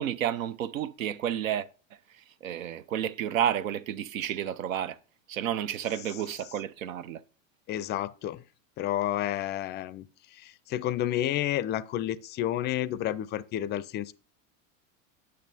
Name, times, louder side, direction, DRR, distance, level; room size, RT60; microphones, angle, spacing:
voice 1, 0.0-1.7 2.4-5.0 5.3-7.2, right 10 dB, 90° right, 0.7 m, -31 dB
voice 2, 7.7-8.4 8.8-14.1, left 12 dB, 30° left, 0.4 m, -31 dB
8.8 x 6.4 x 2.7 m
hypercardioid pair, 110°, 39 cm